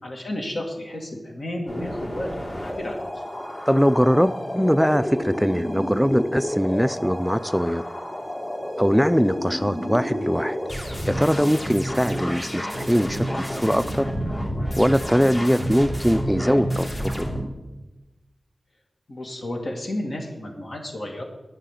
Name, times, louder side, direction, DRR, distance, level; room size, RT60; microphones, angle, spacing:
voice 1, 0.0-3.2 19.1-21.2, left 1 dB, 70° left, 0 dB, 2.1 m, -32 dB
sound 1, 1.7-17.4, equal, 50° left, 2.8 m, -30 dB
voice 2, 3.7-7.8 8.8-10.6 10.8-14.1 14.8-17.3, equal, ahead, 13 dB, 0.4 m, -21 dB
9.9 x 5.6 x 8.3 m, 1.1 s
cardioid pair, 45°, 0 cm